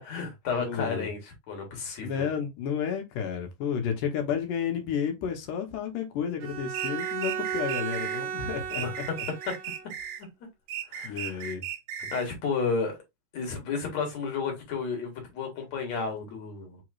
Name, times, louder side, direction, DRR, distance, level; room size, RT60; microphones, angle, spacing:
voice 1, 0.0-2.3 8.8-8.9 9.5-9.6 10.9-11.5 12.1-13.0 13.3-16.8, left 5 dB, 60° left, 2.7 m, -32 dB
voice 2, 0.6-1.1 2.0-8.8 11.0-11.6, left 7 dB, 85° left, 2.5 m, -31 dB
Bowed string instrument, 6.4-9.9, right 8 dB, 70° right, 1.8 m, -35 dB
sound 1, 6.7-8.2 8.7-10.3 10.7-12.3, right 10 dB, 90° right, 2.2 m, -36 dB
5.6 x 3.1 x 2.4 m
omnidirectional pair, 3.6 m